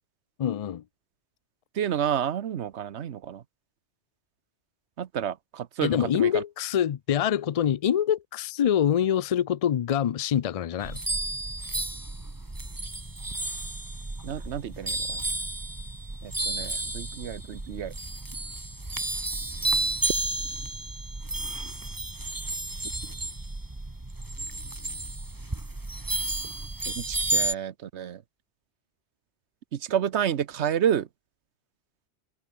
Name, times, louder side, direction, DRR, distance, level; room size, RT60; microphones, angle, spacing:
voice 1, 0.4-0.8 5.8-11.0, left 9 dB, 65° left, 0.3 m, -25 dB
voice 2, 1.7-3.4 5.0-6.4 14.2-15.2 16.2-17.9 26.9-28.2 29.7-31.1, right 9 dB, 85° right, 1.1 m, -30 dB
sound 1, 10.8-27.5, right 2 dB, 20° right, 1.5 m, -32 dB
omnidirectional pair, 1.1 m